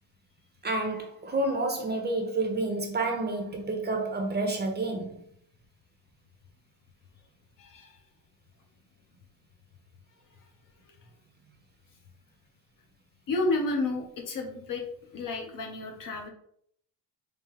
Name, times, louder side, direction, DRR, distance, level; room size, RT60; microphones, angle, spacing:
voice 1, 0.6-5.2, right 2 dB, 25° right, 0.8 m, -29 dB
voice 2, 7.6-8.0 13.3-14.8 15.1-16.3, left 2 dB, 50° left, 1.0 m, -31 dB
3.5 x 3.3 x 3.2 m
supercardioid pair, 95°, 43 cm